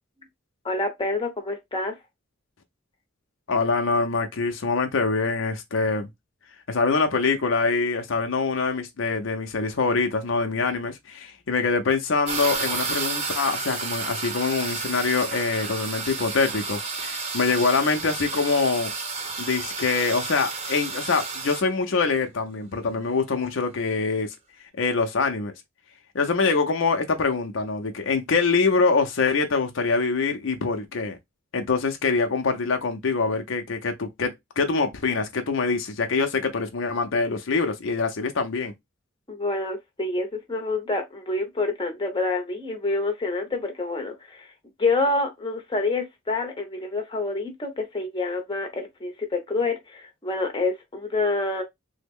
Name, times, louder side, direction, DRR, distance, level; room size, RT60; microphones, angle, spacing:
voice 1, 0.6-2.0 39.3-44.5 44.8-51.6, left 3 dB, 25° left, 0.7 m, -27 dB
voice 2, 3.5-6.1 6.7-18.9 19.4-24.3 24.8-25.5 26.1-31.2 31.5-38.7, left 4 dB, 75° left, 0.6 m, -24 dB
sound 1, 12.3-21.6, right 4 dB, 30° right, 0.7 m, -31 dB
3.4 x 2.1 x 3.4 m
head